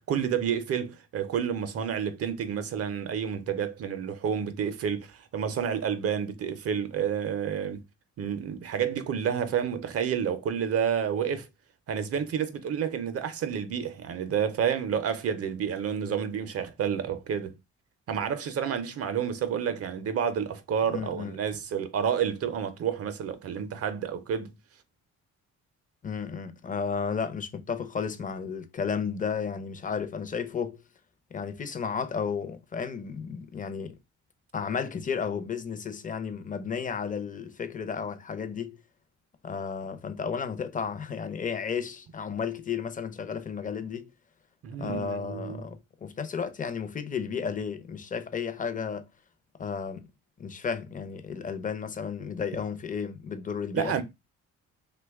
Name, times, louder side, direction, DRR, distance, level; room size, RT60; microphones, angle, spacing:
voice 1, 0.1-7.8 8.2-11.5 11.9-17.6 18.1-24.6 44.6-45.7 53.7-54.0, right 8 dB, 50° right, 0.5 m, -29 dB
voice 2, 20.9-21.4 26.0-30.8 31.3-34.0 34.5-38.8 39.4-44.1 44.8-49.1 49.6-50.1 50.4-54.0, left 6 dB, 25° left, 0.5 m, -33 dB
2.8 x 2.2 x 3.4 m
cardioid pair, 90°, 30 cm